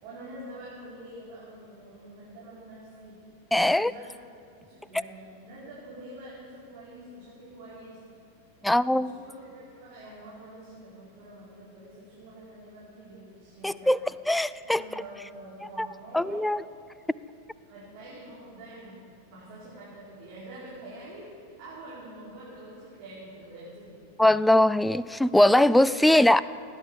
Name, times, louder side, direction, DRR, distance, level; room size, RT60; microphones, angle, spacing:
voice 1, 0.0-3.2 3.6-4.1 4.5-8.0 8.9-13.9 14.6-16.5 17.7-24.0 25.8-26.4, right 1 dB, 45° right, -8 dB, 4.8 m, -46 dB
voice 2, 3.5-3.9 8.6-9.1 13.6-14.0 14.3-14.8 15.8-15.9 16.1-16.6 24.2-26.4, left 1 dB, 5° left, 18 dB, 0.3 m, -21 dB
18.0 x 10.0 x 7.3 m, 2.4 s
figure-of-eight pair, 90°, 0 cm